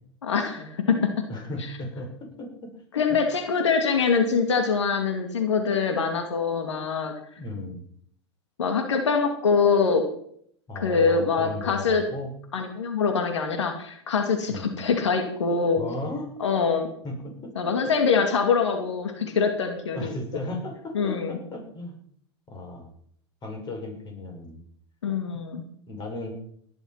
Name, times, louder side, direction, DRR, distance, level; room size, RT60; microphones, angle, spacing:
voice 1, 0.2-1.1 2.9-7.1 8.6-10.0 10.7-12.0 12.5-15.8 16.4-16.9 17.6-20.1 20.9-21.4 25.0-25.6, left 5 dB, 90° left, 5 dB, 2.5 m, -24 dB
voice 2, 1.3-2.7 7.4-7.8 10.7-12.3 14.5-14.7 15.8-16.3 17.0-17.5 19.9-22.0 22.5-22.9 23.4-24.6 25.9-26.3, left 1 dB, 30° left, 3 dB, 6.0 m, -35 dB
18.0 x 11.5 x 5.8 m, 0.66 s
hypercardioid pair, 105°, 15 cm